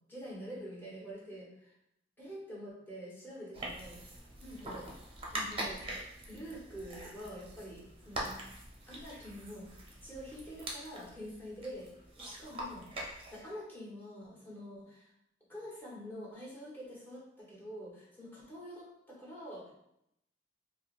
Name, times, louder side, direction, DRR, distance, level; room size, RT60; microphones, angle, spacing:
voice 1, 0.1-1.8 2.2-4.0 4.4-4.9 5.3-5.8 6.3-8.4 8.9-9.7 10.0-11.9 12.2-12.9 13.3-15.1 15.5-19.7, equal, 10° left, -6 dB, 1.0 m, -46 dB
sound 1, 3.5-13.4, right 1 dB, 30° right, 0.6 m, -43 dB
4.7 x 2.0 x 2.4 m, 0.79 s
head